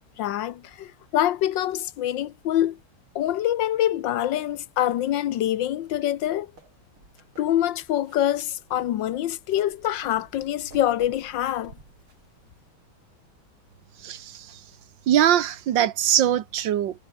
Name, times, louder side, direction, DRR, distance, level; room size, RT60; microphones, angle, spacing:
voice 1, 0.2-2.8 3.1-6.5 7.4-11.7, left 12 dB, 65° left, 1.5 m, -25 dB
sound 1, 6.1-12.7, right 3 dB, 80° right, 6.9 m, -53 dB
voice 2, 15.1-16.9, right 11 dB, 65° right, 1.7 m, -21 dB
omnidirectional pair, 2.3 m